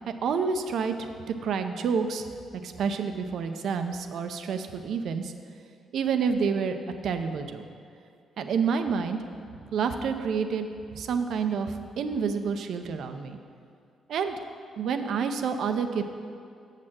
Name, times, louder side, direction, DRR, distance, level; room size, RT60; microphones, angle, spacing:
voice 1, 0.1-1.1 1.4-2.3 2.6-5.3 5.9-6.8 7.0-7.6 8.4-9.2 9.7-10.7 10.9-13.4 14.1-14.4 14.8-16.0, right 6 dB, 70° right, 7 dB, 0.6 m, -28 dB
7.3 x 6.6 x 7.7 m, 2.3 s
supercardioid pair, 60°, 0 cm